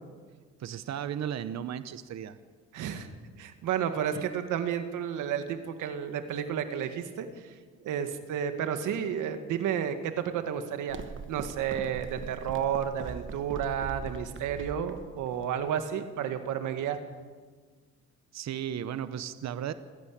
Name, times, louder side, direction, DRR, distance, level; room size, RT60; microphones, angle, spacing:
voice 1, 0.6-2.4 4.1-4.2 18.3-19.7, right 9 dB, 60° right, 13 dB, 1.0 m, -35 dB
voice 2, 2.7-3.1 3.4-7.5 7.8-11.0 11.3-17.0, right 8 dB, 85° right, 8 dB, 2.1 m, -31 dB
sound 1, 10.9-16.0, right 6 dB, 40° right, 1.1 m, -42 dB
29.0 x 11.0 x 8.7 m, 1.5 s
cardioid pair, 90°, 30 cm